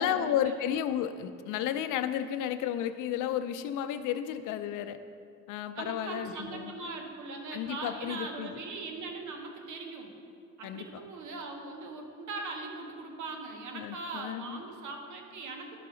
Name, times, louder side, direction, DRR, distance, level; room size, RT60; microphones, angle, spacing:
voice 1, 0.0-5.0 5.5-6.8 7.5-8.6 10.6-10.9 13.7-14.6, left 10 dB, 90° left, 10 dB, 0.5 m, -32 dB
voice 2, 5.7-10.1 10.6-15.8, right 3 dB, 75° right, 3 dB, 1.2 m, -40 dB
11.0 x 5.6 x 3.8 m, 2.3 s
cardioid pair, 90°, 30 cm